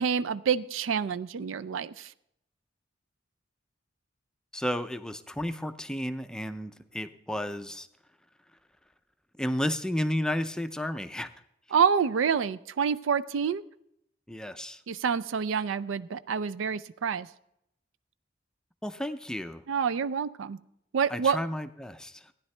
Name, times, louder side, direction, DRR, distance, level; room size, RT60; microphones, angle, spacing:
voice 1, 0.0-2.1 11.7-13.6 14.9-17.3 19.7-20.6 20.9-21.4, right 6 dB, 80° right, 15 dB, 0.4 m, -27 dB
voice 2, 4.5-7.9 9.4-11.3 14.3-14.8 18.8-19.6 21.1-22.3, equal, 5° left, 10 dB, 0.4 m, -32 dB
15.5 x 10.0 x 3.2 m, 0.76 s
head